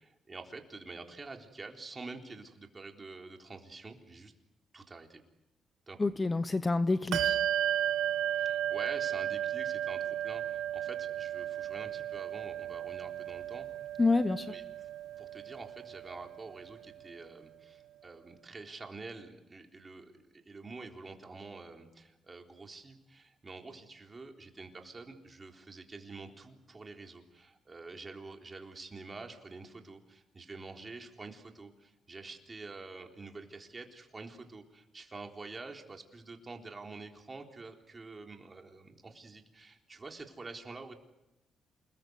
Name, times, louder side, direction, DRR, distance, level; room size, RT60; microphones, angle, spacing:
voice 1, 0.0-4.3 4.7-5.2 5.9-6.0 8.3-13.7 14.5-14.6 15.2-40.9, right 3 dB, 25° right, 3 dB, 3.9 m, -47 dB
voice 2, 6.0-7.4 14.0-14.5, left 3 dB, 20° left, 12 dB, 0.9 m, -28 dB
Bell, 7.1-17.1, right 11 dB, 80° right, 1.1 m, -34 dB
28.0 x 20.5 x 8.1 m, 0.93 s
cardioid pair, 90°, 0 cm